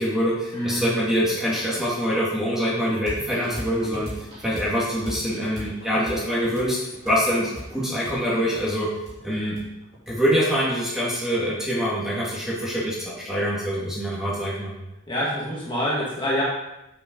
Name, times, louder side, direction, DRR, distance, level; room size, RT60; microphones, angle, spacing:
voice 1, 0.0-8.9 9.2-9.6 10.1-14.8, equal, 5° right, -7 dB, 2.0 m, -25 dB
voice 2, 0.5-0.9 15.1-16.4, equal, 25° left, -6 dB, 1.8 m, -26 dB
sound 1, 3.1-10.6, equal, 30° right, 3.5 m, -38 dB
8.1 x 7.7 x 3.9 m, 0.95 s
head